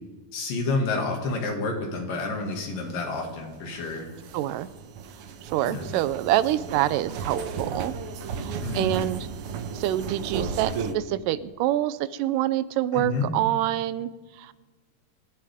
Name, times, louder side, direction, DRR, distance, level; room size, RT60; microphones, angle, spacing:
voice 1, 0.3-4.1 5.6-5.9 8.6-9.0 12.9-13.3, left 3 dB, 80° left, 2 dB, 3.8 m, -29 dB
sound 1, 2.5-10.9, right 5 dB, 70° right, 1.4 m, -35 dB
voice 2, 4.3-4.7 5.4-7.9 8.3-9.3 9.7-14.1 14.4-14.5, right 13 dB, 85° right, 15 dB, 2.2 m, -26 dB
25.0 x 12.0 x 3.6 m, 1.3 s
omnidirectional pair, 3.8 m